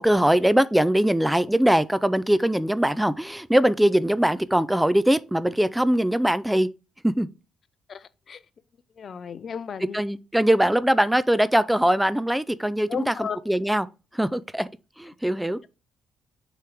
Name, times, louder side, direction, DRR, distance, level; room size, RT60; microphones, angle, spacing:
voice 1, 0.0-6.7 7.0-7.3 9.9-13.9 14.1-14.7 15.0-15.6, right 1 dB, 5° right, 0.4 m, -21 dB
voice 2, 7.9-8.4 9.0-10.0 12.9-13.4, left 7 dB, 50° left, 0.5 m, -34 dB
6.7 x 3.0 x 5.0 m
cardioid pair, 90°, 0 cm